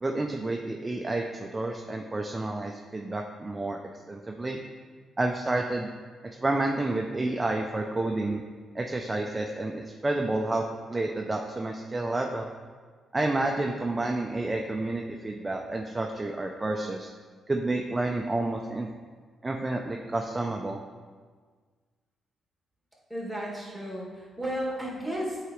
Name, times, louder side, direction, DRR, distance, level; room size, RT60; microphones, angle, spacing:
voice 1, 0.0-3.8 4.1-4.6 5.2-5.9 6.4-8.4 8.7-12.5 13.1-17.1 17.5-18.9 19.4-20.8, right 2 dB, 20° right, 2 dB, 0.4 m, -30 dB
voice 2, 23.1-25.4, equal, ahead, -5 dB, 1.9 m, -33 dB
8.1 x 4.8 x 3.0 m, 1.5 s
cardioid pair, 105°, 0 cm